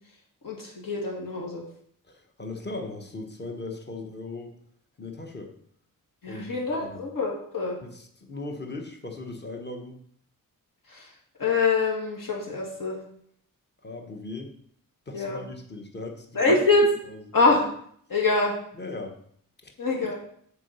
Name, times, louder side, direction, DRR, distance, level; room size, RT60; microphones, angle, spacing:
voice 1, 0.4-1.6 6.2-7.8 10.9-11.1 11.4-13.0 15.1-15.4 16.3-16.9 17.3-17.7 18.1-18.5 19.8-20.1, left 3 dB, 70° left, -1 dB, 2.5 m, -24 dB
voice 2, 2.1-4.6 5.0-5.5 6.3-7.0 7.8-10.0 13.8-14.5 15.1-16.6 18.8-19.2 19.6-20.0, left 2 dB, 30° left, 4 dB, 1.2 m, -38 dB
7.2 x 4.8 x 6.8 m, 0.64 s
wide cardioid pair, 145°, 34 cm